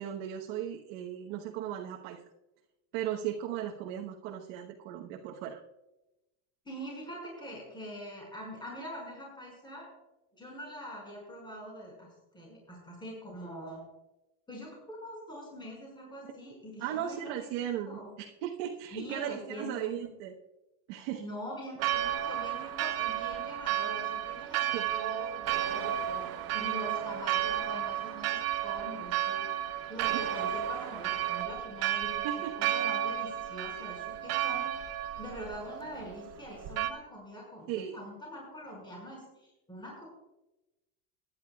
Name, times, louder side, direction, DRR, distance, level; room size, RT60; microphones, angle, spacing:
voice 1, 0.0-2.2 2.9-5.6 16.2-16.3 16.8-20.3 20.9-21.2 24.7-24.9 32.2-32.5 37.7-38.0, right 10 dB, 70° right, 0 dB, 1.2 m, -36 dB
voice 2, 6.7-9.9 10.3-12.1 12.3-13.9 14.5-17.3 17.6-18.1 18.9-20.1 21.2-24.7 24.9-29.4 29.9-32.3 32.6-34.7 35.2-40.1, equal, 10° left, -3 dB, 5.3 m, -44 dB
Church bell, 21.8-36.9, right 12 dB, 40° right, 0.7 m, -33 dB
22.0 x 10.5 x 2.3 m, 0.97 s
cardioid pair, 160°, 39 cm